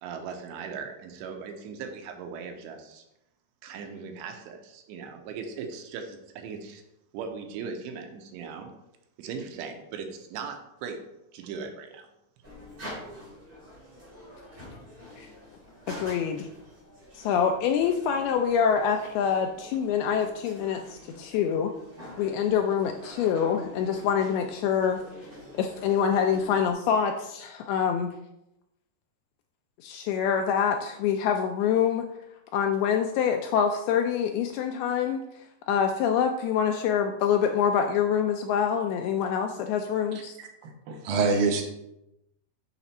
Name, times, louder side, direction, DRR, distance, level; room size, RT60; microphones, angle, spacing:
voice 1, 0.0-3.0 3.6-6.8 7.1-8.7 9.2-11.0 11.3-12.1, right 5 dB, 90° right, 5 dB, 3.1 m, -38 dB
sound 1, 12.4-26.7, equal, 25° right, 2.8 m, -46 dB
voice 2, 15.9-16.5 17.1-21.7 22.2-25.0 25.6-28.1 29.8-32.0 32.5-40.3, left 7 dB, 85° left, 4 dB, 2.2 m, -26 dB
voice 3, 40.4-41.7, right 4 dB, 70° right, 3 dB, 2.4 m, -26 dB
7.0 x 5.8 x 4.2 m, 0.86 s
omnidirectional pair, 4.9 m